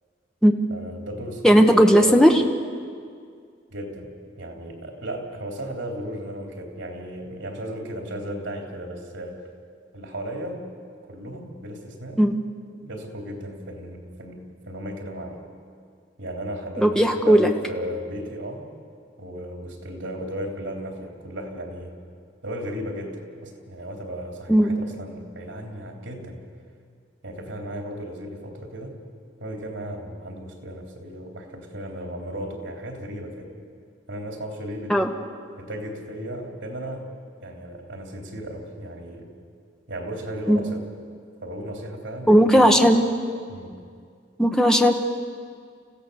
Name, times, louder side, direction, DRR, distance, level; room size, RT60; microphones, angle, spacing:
voice 1, 0.7-2.2 3.7-9.4 9.9-10.6 11.1-12.2 12.8-15.4 16.2-18.7 19.2-21.9 22.4-26.4 27.2-29.0 29.4-33.5 34.1-35.0 35.6-37.1 37.4-39.3 39.9-40.9 41.4-42.9 43.5-43.8, equal, 80° right, 2 dB, 3.5 m, -35 dB
voice 2, 1.4-2.3 12.2-12.3 16.8-17.5 24.5-24.7 34.9-35.1 40.5-40.6 42.3-43.0 44.4-44.9, equal, 5° left, 4 dB, 1.2 m, -16 dB
29.0 x 16.0 x 7.0 m, 2.2 s
head